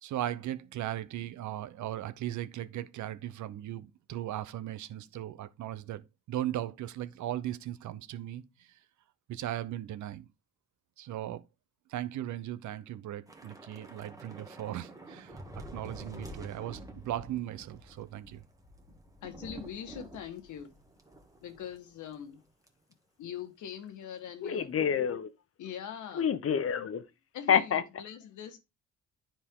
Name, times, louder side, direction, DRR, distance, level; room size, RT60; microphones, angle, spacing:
voice 1, 0.0-8.7 9.3-10.3 11.0-11.4 11.9-15.4 15.7-18.4, right 12 dB, 75° right, 0.7 m, -37 dB
Thunder / Rain, 13.3-21.9 22.1-22.3 22.7-22.9, right 1 dB, 10° right, 1.5 m, -48 dB
voice 2, 19.2-20.7 21.4-22.4 23.2-24.7 25.6-26.3 27.3-28.7, left 9 dB, 80° left, 1.5 m, -42 dB
voice 3, 24.4-25.3 26.1-27.0 27.5-27.8, left 7 dB, 50° left, 1.0 m, -27 dB
9.8 x 4.4 x 3.7 m
cardioid pair, 90°, 30 cm